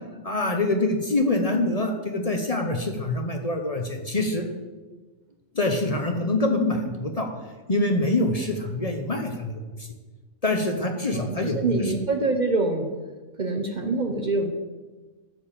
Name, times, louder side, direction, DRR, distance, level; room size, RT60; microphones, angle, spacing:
voice 1, 0.2-4.4 5.5-7.3 7.7-9.9 10.4-11.6, left 2 dB, 35° left, 4 dB, 1.0 m, -25 dB
voice 2, 11.1-12.9 13.4-14.5, right 3 dB, 45° right, 5 dB, 0.8 m, -25 dB
13.0 x 4.7 x 7.3 m, 1.3 s
omnidirectional pair, 1.2 m